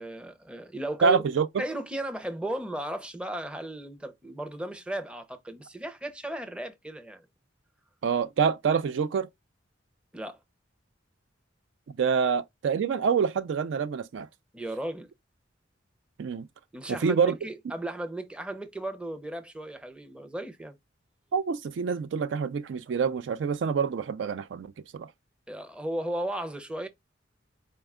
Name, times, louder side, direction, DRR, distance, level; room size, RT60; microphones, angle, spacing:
voice 1, 0.0-1.2 1.6-7.2 10.1-10.4 14.5-15.1 16.7-20.7 25.5-26.9, right 1 dB, 5° right, 0.5 m, -35 dB
voice 2, 1.0-1.6 8.0-9.3 12.0-14.3 16.2-16.5 16.9-17.3 21.3-24.7 24.9-25.1, right 6 dB, 70° right, 0.3 m, -26 dB
4.3 x 2.2 x 3.5 m
head